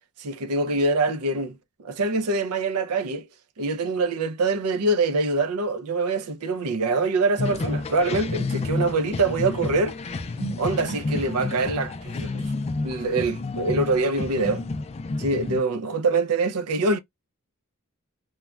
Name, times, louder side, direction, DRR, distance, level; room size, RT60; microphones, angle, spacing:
voice 1, 0.2-3.3 3.6-10.0 10.4-12.5 12.8-14.6 15.2-17.0, right 3 dB, 80° right, 0.5 m, -24 dB
sound 1, 7.4-15.6, left 3 dB, 30° left, 0.3 m, -30 dB
3.2 x 2.2 x 2.3 m
head